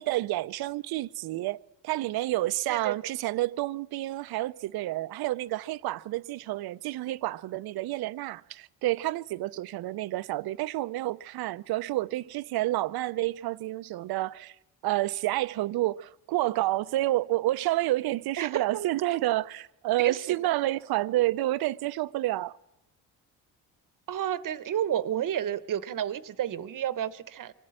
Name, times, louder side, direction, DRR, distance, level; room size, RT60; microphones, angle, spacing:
voice 1, 0.0-14.5 14.8-22.6, right 16 dB, 70° right, 0.6 m, -29 dB
voice 2, 18.4-18.9 20.0-20.2 24.1-27.5, right 10 dB, 55° right, 1.0 m, -31 dB
24.5 x 13.0 x 8.8 m
cardioid pair, 85°, 38 cm